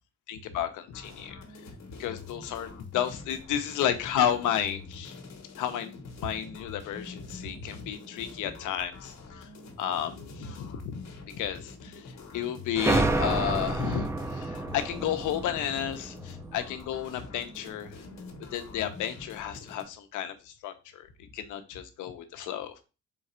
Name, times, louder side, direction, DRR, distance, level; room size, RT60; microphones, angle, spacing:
voice 1, 0.3-1.4 1.9-5.2 5.6-9.5 9.8-11.0 11.3-18.0 18.5-21.1 21.3-22.8, left 9 dB, 85° left, 8 dB, 0.7 m, -32 dB
sound 1, 0.9-19.8, left 3 dB, 60° left, 1.1 m, -46 dB
sound 2, 12.7-17.2, right 2 dB, 10° right, 0.4 m, -30 dB
3.8 x 2.5 x 4.2 m, 0.31 s
cardioid pair, 90°, 30 cm